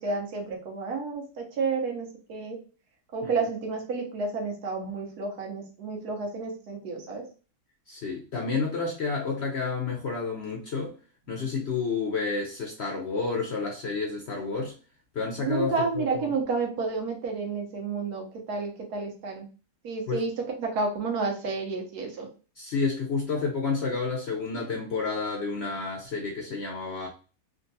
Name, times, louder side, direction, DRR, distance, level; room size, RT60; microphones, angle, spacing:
voice 1, 0.0-2.6 3.1-7.3 15.4-19.5 19.8-22.3, right 4 dB, 75° right, 1.3 m, -30 dB
voice 2, 7.9-10.9 11.3-14.7 15.1-16.3 20.1-20.2 22.6-27.1, left 4 dB, 60° left, 0.7 m, -30 dB
3.7 x 2.3 x 2.6 m
omnidirectional pair, 1.7 m